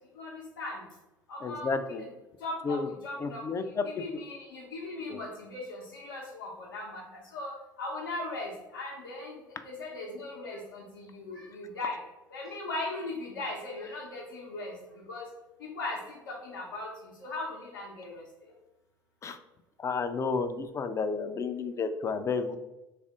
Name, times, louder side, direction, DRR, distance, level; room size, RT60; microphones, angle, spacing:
voice 1, 0.1-0.8 1.3-1.7 2.4-12.0 12.3-15.3 15.6-18.2, left 2 dB, 75° left, -4 dB, 0.7 m, -39 dB
voice 2, 1.4-2.0 2.6-2.9 3.2-4.2 5.1-5.2 19.2-19.4 19.8-22.6, left 4 dB, 25° left, 9 dB, 0.4 m, -31 dB
3.4 x 2.5 x 3.6 m, 1.0 s
figure-of-eight pair, 65°, 11 cm